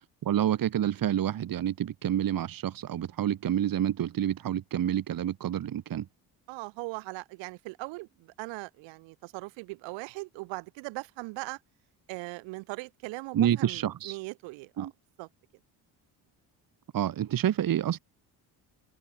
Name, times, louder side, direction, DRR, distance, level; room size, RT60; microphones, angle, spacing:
voice 1, 0.2-6.0 13.3-14.2 14.8-14.9 16.9-18.0, right 11 dB, 50° right, 1.5 m, -28 dB
voice 2, 6.5-11.6 12.1-14.9 15.2-15.3, right 24 dB, 90° right, 2.7 m, -40 dB
supercardioid pair, 80°, 43 cm